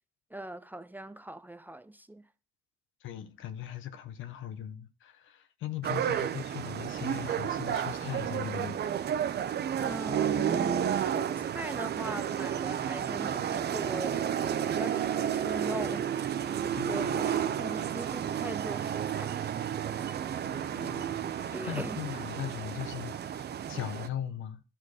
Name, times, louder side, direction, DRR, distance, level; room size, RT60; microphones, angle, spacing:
voice 1, 0.3-2.2 9.8-16.4 16.8-19.5 21.5-22.0, right 1 dB, 10° right, 0.5 m, -41 dB
voice 2, 3.0-8.8 16.8-17.1 20.4-21.1 21.7-24.6, left 10 dB, 80° left, 1.0 m, -39 dB
sound 1, 5.8-24.1, right 9 dB, 55° right, 0.7 m, -32 dB
12.5 x 4.5 x 4.9 m
cardioid pair, 90°, 20 cm